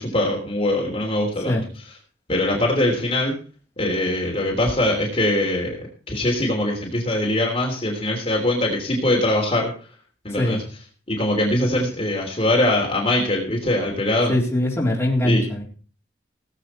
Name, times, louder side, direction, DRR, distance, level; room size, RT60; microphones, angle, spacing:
voice 1, 0.0-1.5 2.3-3.3 3.8-5.8 6.1-9.7 10.2-10.6 11.1-14.3 15.2-15.4, left 1 dB, 30° left, -1 dB, 3.2 m, -22 dB
voice 2, 10.3-10.6 14.3-15.6, left 1 dB, 10° left, -4 dB, 3.8 m, -22 dB
18.5 x 8.4 x 4.4 m, 0.40 s
head